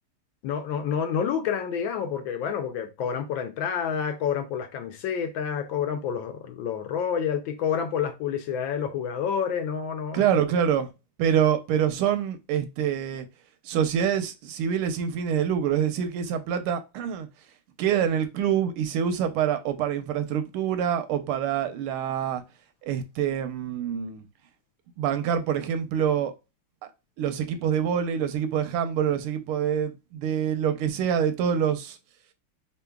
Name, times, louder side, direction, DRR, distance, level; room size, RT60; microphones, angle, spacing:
voice 1, 0.4-10.2, left 7 dB, 75° left, 1.3 m, -28 dB
voice 2, 10.1-10.9 11.2-13.3 13.6-17.3 17.8-22.4 22.8-24.2 25.0-26.3 26.8-26.9 27.2-32.0, right 8 dB, 85° right, 1.5 m, -26 dB
3.9 x 3.8 x 2.3 m
omnidirectional pair, 2.4 m